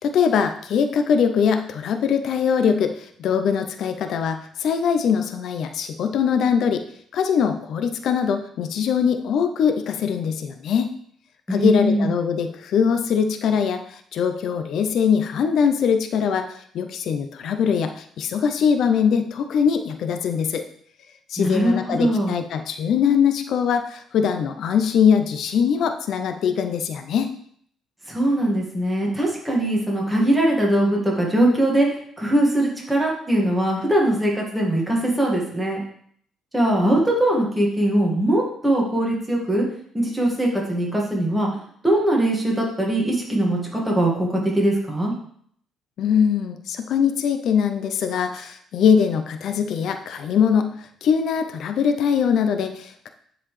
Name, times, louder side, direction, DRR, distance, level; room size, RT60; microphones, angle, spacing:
voice 1, 0.0-6.8 7.1-10.9 11.5-20.6 21.3-27.3 46.0-53.1, left 7 dB, 65° left, 7 dB, 0.5 m, -22 dB
voice 2, 11.5-12.1 21.4-22.4 28.1-35.8 36.5-39.7 39.9-41.5 41.8-45.1, right 1 dB, 5° right, -3 dB, 1.8 m, -21 dB
10.0 x 4.0 x 3.2 m, 0.63 s
cardioid pair, 125°, 0 cm